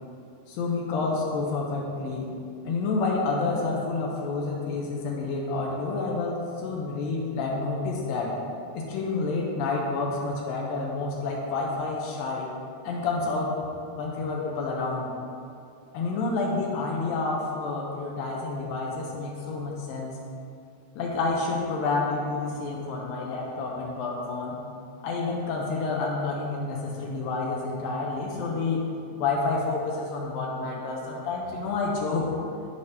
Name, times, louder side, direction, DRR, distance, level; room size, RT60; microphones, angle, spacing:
voice 1, 0.5-2.3 2.6-8.3 8.7-12.5 12.8-13.5 13.9-15.1 15.9-20.2 21.0-24.6 25.0-28.8 29.2-32.3, left 3 dB, 80° left, -2 dB, 2.1 m, -29 dB
10.5 x 4.9 x 2.8 m, 2.6 s
omnidirectional pair, 4.8 m